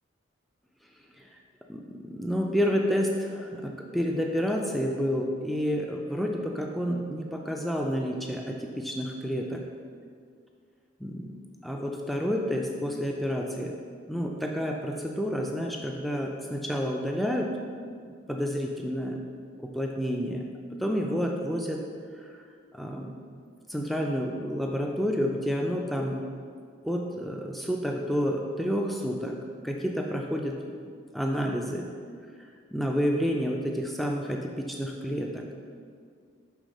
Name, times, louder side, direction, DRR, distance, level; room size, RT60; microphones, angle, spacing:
voice 1, 1.7-9.6 11.0-11.3 11.6-13.7 14.0-17.5 18.0-19.2 19.6-20.4 20.8-21.8 22.2-22.4 22.7-23.2 23.7-26.2 26.8-29.4 29.6-30.6 31.1-31.9 32.7-35.4, equal, ahead, 0 dB, 0.3 m, -29 dB
6.4 x 3.6 x 5.2 m, 2.1 s
head